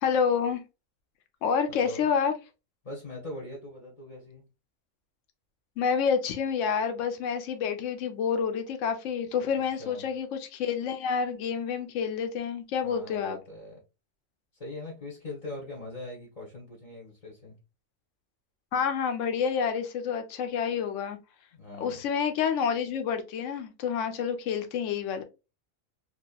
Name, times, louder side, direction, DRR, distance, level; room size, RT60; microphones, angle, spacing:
voice 1, 0.0-0.6 1.4-2.3 5.8-13.4 18.7-21.2 21.8-25.2, left 6 dB, 70° left, 0.9 m, -28 dB
voice 2, 1.7-2.1 2.8-4.4 9.8-10.1 12.8-13.8 14.5-17.5 21.5-22.0, left 2 dB, 30° left, 0.8 m, -41 dB
2.8 x 2.5 x 2.3 m
omnidirectional pair, 1.4 m